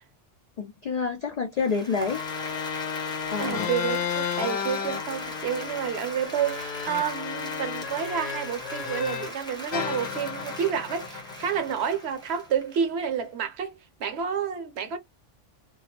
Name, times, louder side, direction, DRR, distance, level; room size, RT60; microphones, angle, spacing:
voice 1, 0.6-2.2 3.3-3.7, left 5 dB, 90° left, 0.3 m, -28 dB
Applause, 1.5-13.2, equal, 5° left, 0.6 m, -40 dB
sound 1, 2.0-9.4 9.7-12.1, left 8 dB, 65° left, 0.8 m, -33 dB
voice 2, 3.4-15.0, right 7 dB, 65° right, 0.8 m, -29 dB
2.3 x 2.0 x 2.7 m
omnidirectional pair, 1.2 m